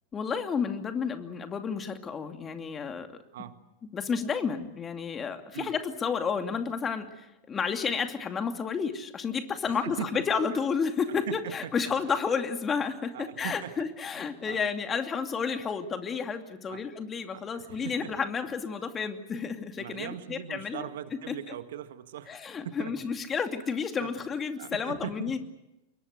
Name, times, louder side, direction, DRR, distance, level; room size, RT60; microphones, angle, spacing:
voice 1, 0.1-3.1 3.8-20.9 21.3-21.4 22.3-25.4, left 6 dB, 20° left, 7 dB, 2.6 m, -31 dB
voice 2, 9.7-10.2 11.1-11.9 13.1-13.7 14.1-14.6 16.7-16.8 17.3-18.1 19.8-22.9 24.0-24.1 24.6-25.3, right 10 dB, 65° right, 11 dB, 1.7 m, -40 dB
26.5 x 22.5 x 7.9 m, 0.94 s
figure-of-eight pair, 95°, 0 cm